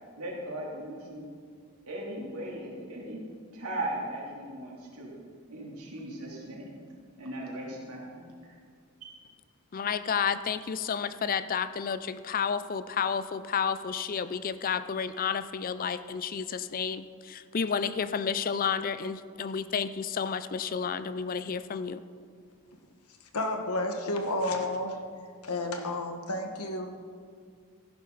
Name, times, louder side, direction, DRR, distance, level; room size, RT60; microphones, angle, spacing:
voice 1, 0.2-1.3 1.9-3.2 3.5-5.1 5.5-6.7 7.2-8.6 9.0-9.2, right 1 dB, 85° right, -3 dB, 3.1 m, -38 dB
voice 2, 9.7-22.0, left 6 dB, 40° left, 13 dB, 0.4 m, -31 dB
voice 3, 23.3-25.0 25.4-26.9, left 1 dB, 90° left, 4 dB, 1.4 m, -31 dB
15.0 x 11.5 x 4.0 m, 2.1 s
head